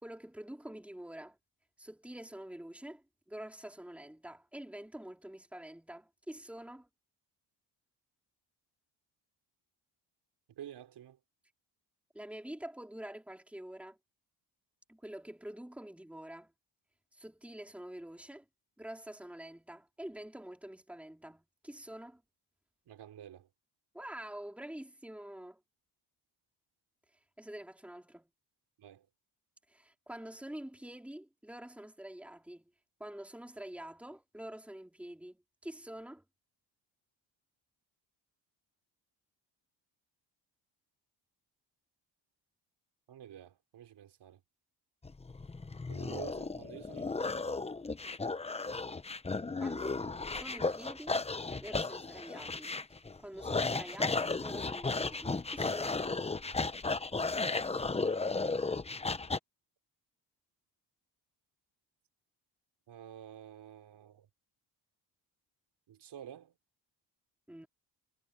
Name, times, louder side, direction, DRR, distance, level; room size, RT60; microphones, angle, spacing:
voice 1, 0.0-1.4 1.8-6.9 12.1-14.0 14.9-16.5 17.1-18.5 18.8-22.2 23.9-25.6 27.4-28.3 29.7-32.7 33.0-36.2 49.6-50.0 50.3-51.2 51.6-52.8 53.2-56.1 67.5-67.7, right 1 dB, 5° right, 3.5 m, -46 dB
voice 2, 10.5-11.2 22.9-23.5 28.8-29.1 43.1-44.4 45.9-47.2 49.8-50.2 62.9-64.3 65.9-66.5, right 10 dB, 65° right, 4.7 m, -50 dB
sound 1, 45.0-59.4, left 3 dB, 15° left, 1.0 m, -35 dB
cardioid pair, 115°, 43 cm